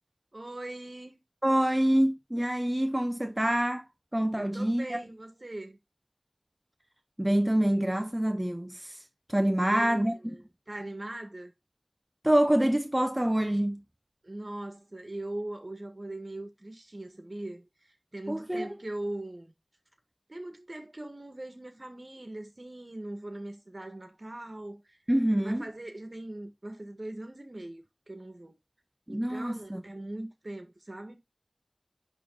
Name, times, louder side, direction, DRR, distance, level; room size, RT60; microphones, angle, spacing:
voice 1, 0.3-1.2 4.4-5.8 9.6-11.5 14.2-19.5 20.3-25.0 25.4-28.5 29.1-31.2, right 1 dB, 60° right, 1.8 m, -41 dB
voice 2, 1.4-3.8 4.1-5.0 7.2-9.0 9.3-10.1 12.2-13.8 18.3-18.7 25.1-25.6 29.1-29.8, right 1 dB, 20° right, 0.6 m, -26 dB
10.0 x 3.7 x 3.9 m
wide cardioid pair, 45°, 0 cm